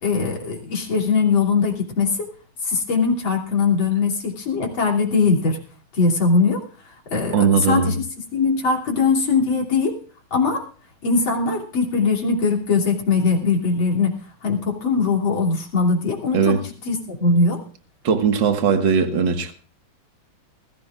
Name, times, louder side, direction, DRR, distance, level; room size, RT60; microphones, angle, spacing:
voice 1, 0.0-2.3 2.6-5.6 5.9-6.6 7.1-8.0 8.3-10.0 10.3-10.6 11.0-14.2 14.4-16.6 16.8-17.6, left 4 dB, 65° left, -1 dB, 3.7 m, -21 dB
voice 2, 7.3-7.9 16.3-16.6 18.0-19.5, right 6 dB, 60° right, 6 dB, 2.2 m, -19 dB
20.5 x 15.5 x 2.4 m, 0.42 s
omnidirectional pair, 2.4 m